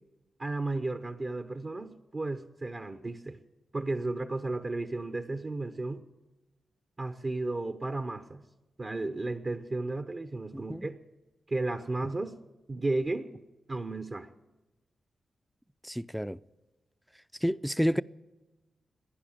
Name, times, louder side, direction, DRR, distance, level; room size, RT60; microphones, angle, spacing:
voice 1, 0.4-3.4 3.7-6.0 7.0-8.4 8.8-11.0 11.5-12.4 12.7-13.3 13.7-14.3, right 2 dB, 40° right, 0.9 m, -33 dB
voice 2, 10.5-10.9 15.8-16.4 17.4-18.0, equal, ahead, 0.4 m, -29 dB
16.0 x 10.5 x 8.8 m
supercardioid pair, 50°, 0 cm